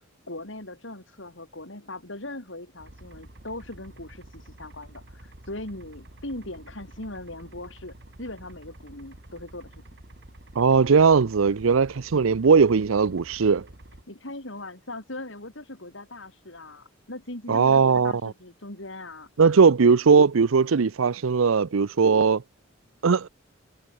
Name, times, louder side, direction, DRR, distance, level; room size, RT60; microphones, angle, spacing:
voice 1, 0.3-9.8 12.1-12.4 14.1-19.3, left 2 dB, 65° left, 4.9 m, -40 dB
sound 1, 2.8-14.0, right 1 dB, 55° right, 2.3 m, -48 dB
voice 2, 10.6-13.6 17.5-18.3 19.4-22.4 23.0-23.3, right 5 dB, 85° right, 0.6 m, -19 dB
head